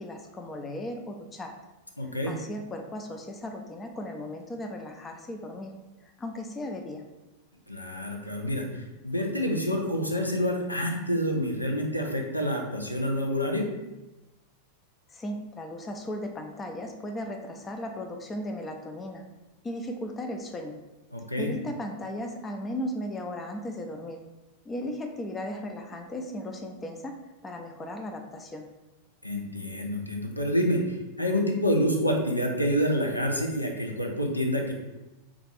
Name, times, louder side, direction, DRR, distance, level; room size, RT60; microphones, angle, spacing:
voice 1, 0.0-1.5 2.2-5.7 6.2-7.0 15.1-19.2 19.6-20.8 21.4-24.2 24.7-27.1 27.4-28.6, left 1 dB, 20° left, 4 dB, 0.4 m, -36 dB
voice 2, 2.0-2.4 7.7-13.7 21.1-21.5 29.2-30.8 31.2-34.7, equal, 85° left, 1 dB, 0.4 m, -27 dB
3.4 x 2.4 x 3.2 m, 1.0 s
figure-of-eight pair, 90°, 0 cm